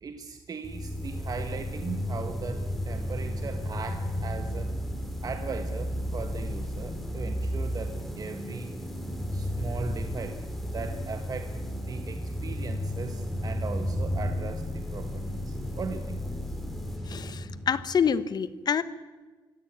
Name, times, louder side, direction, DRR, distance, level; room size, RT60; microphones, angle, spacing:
voice 1, 0.0-4.7 5.2-8.8 9.3-11.6 11.9-16.6, right 4 dB, 45° right, 7 dB, 1.5 m, -38 dB
sound 1, 0.6-18.1, equal, ahead, 3.6 m, -33 dB
voice 2, 17.1-18.8, left 7 dB, 50° left, 15 dB, 1.1 m, -27 dB
24.5 x 16.0 x 8.8 m, 1.4 s
cardioid pair, 125°, 9 cm